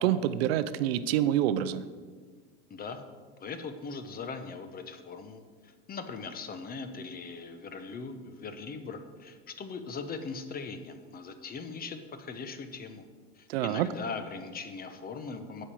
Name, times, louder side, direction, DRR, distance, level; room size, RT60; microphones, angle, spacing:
voice 1, 0.0-1.8 13.5-13.9, right 11 dB, 75° right, 14 dB, 0.6 m, -27 dB
voice 2, 2.7-3.0 3.4-13.0 13.3-15.7, left 4 dB, 30° left, 8 dB, 1.0 m, -40 dB
8.1 x 5.4 x 7.6 m, 1.5 s
hypercardioid pair, 90°, 30 cm